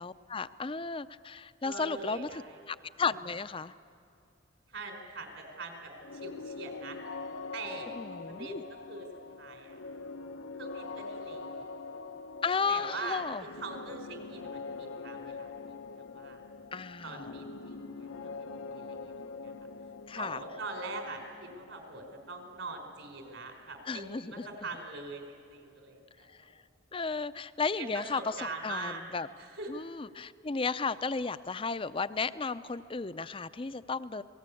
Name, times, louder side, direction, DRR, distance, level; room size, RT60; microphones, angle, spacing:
voice 1, 0.0-3.7 7.9-8.6 12.4-13.4 16.7-17.2 20.1-20.4 23.9-24.5 26.4-26.5 26.9-28.2 28.6-29.3 29.7-34.2, left 4 dB, 25° left, 14 dB, 0.5 m, -34 dB
voice 2, 1.6-2.6 4.7-7.0 7.5-8.0 8.3-9.1 9.4-9.8 10.6-11.7 12.7-15.5 16.0-16.4 17.0-19.5 20.1-24.0 24.3-26.5 27.8-29.0 29.4-29.7, right 3 dB, 65° right, 4 dB, 4.6 m, -43 dB
sound 1, 6.0-23.6, left 4 dB, 85° left, 0.9 m, -44 dB
28.5 x 19.5 x 8.5 m, 2.6 s
head